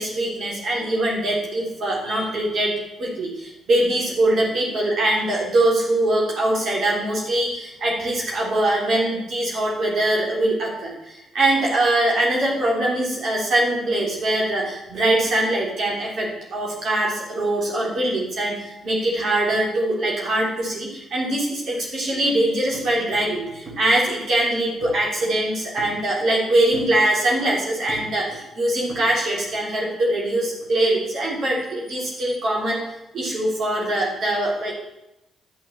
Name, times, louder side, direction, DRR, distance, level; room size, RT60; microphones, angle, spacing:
voice 1, 0.0-2.7 3.0-32.8 33.1-34.7, right 1 dB, 60° right, -4 dB, 3.4 m, -22 dB
10.0 x 6.3 x 7.6 m, 0.89 s
hypercardioid pair, 45°, 0 cm